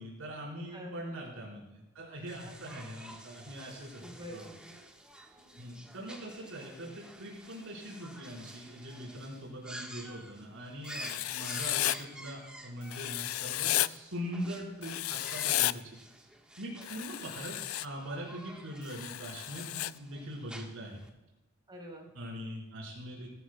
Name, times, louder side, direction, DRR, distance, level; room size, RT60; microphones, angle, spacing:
voice 1, 0.0-4.0 4.3-4.5 5.6-16.0 16.6-21.0 22.1-23.3, equal, 75° right, -4 dB, 4.6 m, -42 dB
voice 2, 0.7-1.2 2.4-2.5 4.0-4.8 5.4-5.7 17.1-17.2 21.7-22.1, equal, 20° right, 0 dB, 4.1 m, -47 dB
sound 1, 2.3-21.1, right 1 dB, 5° right, 1.3 m, -50 dB
Writing, 10.9-12.0 12.9-13.9 14.8-15.7 16.8-17.9 18.9-19.9, left 15 dB, 85° left, 0.4 m, -33 dB
20.0 x 13.5 x 2.3 m, 1.0 s
head